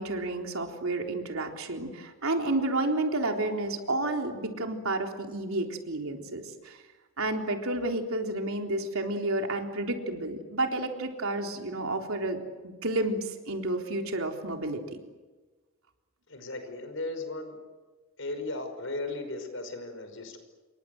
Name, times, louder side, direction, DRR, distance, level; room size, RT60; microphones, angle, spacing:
voice 1, 0.0-6.8 7.2-15.0, right 2 dB, 85° right, 3 dB, 3.8 m, -31 dB
voice 2, 16.3-17.6 18.2-20.4, left 2 dB, 70° left, 8 dB, 5.4 m, -36 dB
28.0 x 24.0 x 7.9 m, 1.3 s
head